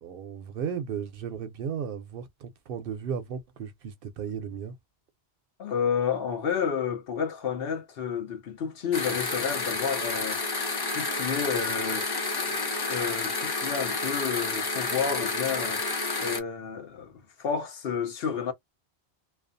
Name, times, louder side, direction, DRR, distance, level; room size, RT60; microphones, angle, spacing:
voice 1, 0.0-4.8, right 7 dB, 65° right, 0.7 m, -35 dB
voice 2, 5.6-10.4 10.9-12.1 12.5-15.8 16.2-18.5, left 6 dB, 65° left, 0.9 m, -30 dB
sound 1, 8.9-16.4, left 3 dB, 40° left, 0.3 m, -30 dB
2.4 x 2.3 x 2.5 m
omnidirectional pair, 1.1 m